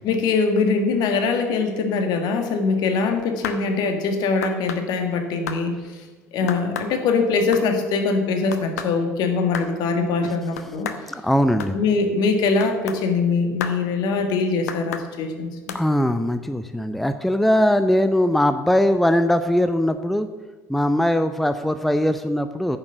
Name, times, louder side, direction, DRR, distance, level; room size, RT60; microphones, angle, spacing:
voice 1, 0.0-5.7 6.3-10.9 11.7-15.5, left 4 dB, 55° left, 5 dB, 1.8 m, -22 dB
sound 1, 3.2-3.6 4.4-4.8 5.5-5.6 6.5-6.9 7.3-7.7 8.5-8.9 9.5-9.7 10.6-11.0 11.6-11.7 12.6-13.0 13.6-13.8 14.7-15.1 15.7-15.8, left 7 dB, 75° left, 0.9 m, -31 dB
voice 2, 11.1-11.7 15.7-20.3 20.7-22.8, left 1 dB, ahead, 10 dB, 0.6 m, -20 dB
9.7 x 7.2 x 7.9 m, 1.3 s
figure-of-eight pair, 65°, 8 cm